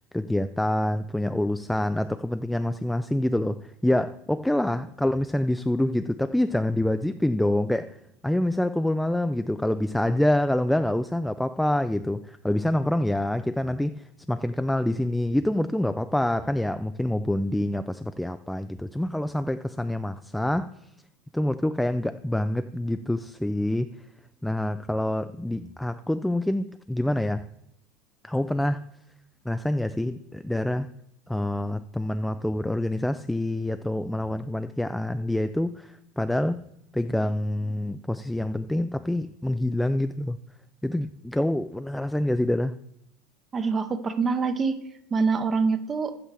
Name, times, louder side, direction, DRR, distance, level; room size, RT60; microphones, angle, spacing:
voice 1, 0.1-8.0 8.2-20.7 21.3-23.9 24.4-27.5 28.2-28.8 29.5-30.9 31.3-36.6 36.9-40.4 40.8-42.8, left 1 dB, 5° left, 0.3 m, -26 dB
voice 2, 43.5-44.8 45.1-46.2, right 4 dB, 30° right, 0.7 m, -25 dB
8.3 x 5.7 x 4.8 m
hypercardioid pair, 85°, 0 cm